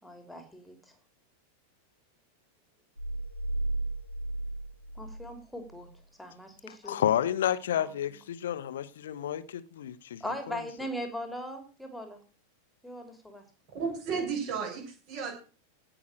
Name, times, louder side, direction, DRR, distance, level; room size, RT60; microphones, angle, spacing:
voice 1, 0.0-0.8 5.0-5.9 6.2-7.1 7.7-8.2 10.2-12.2 12.8-13.4, equal, ahead, 3.1 m, -40 dB
sound 1, 3.0-6.0, right 2 dB, 90° left, 0.8 m, -34 dB
voice 2, 6.7-10.2 10.5-10.6, left 10 dB, 60° left, 1.0 m, -30 dB
voice 3, 13.7-15.3, right 5 dB, 40° right, 7.2 m, -33 dB
18.0 x 6.1 x 6.4 m
figure-of-eight pair, 90°, 0 cm